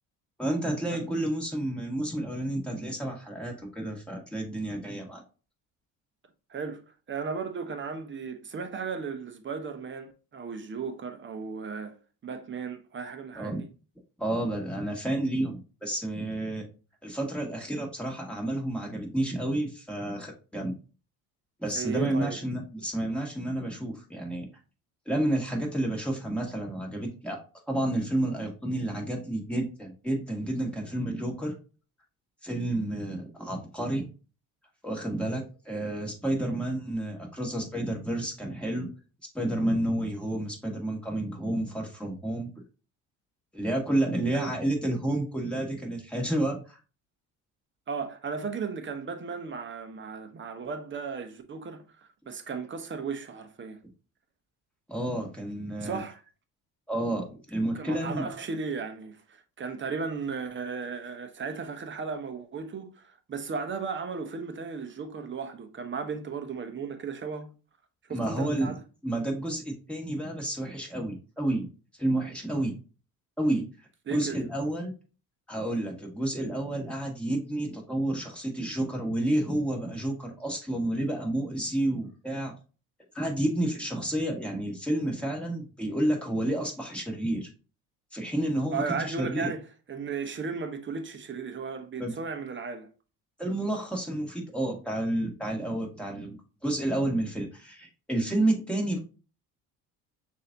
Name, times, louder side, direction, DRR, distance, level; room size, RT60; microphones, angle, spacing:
voice 1, 0.4-5.2 13.3-13.6 14.2-16.6 17.0-20.7 21.6-24.5 25.1-27.4 27.7-31.6 32.4-34.1 34.8-38.9 39.3-42.5 43.5-46.8 54.9-56.0 56.9-58.3 68.1-68.7 69.0-71.7 72.0-72.8 73.4-73.7 74.1-74.9 75.5-82.5 83.1-87.5 88.1-89.5 92.0-92.1 93.4-99.0, right 1 dB, 5° left, 1.8 m, -30 dB
voice 2, 6.5-12.0 12.2-13.7 21.7-22.4 36.4-36.5 44.3-44.5 47.9-53.8 55.8-56.2 57.6-67.5 68.1-68.8 74.1-74.4 88.7-92.9, right 5 dB, 30° right, 0.8 m, -35 dB
6.3 x 2.7 x 2.6 m
supercardioid pair, 85°, 38 cm